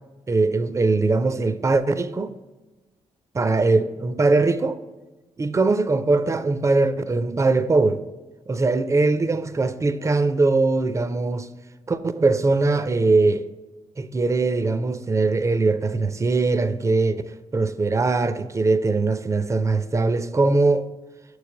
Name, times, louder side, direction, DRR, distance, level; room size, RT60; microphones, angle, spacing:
voice 1, 0.3-2.3 3.3-4.8 5.4-8.0 8.5-11.5 11.9-13.5 14.0-17.2 17.5-20.9, right 3 dB, 25° right, 0.4 m, -21 dB
6.4 x 3.2 x 5.0 m
supercardioid pair, 60°, 13 cm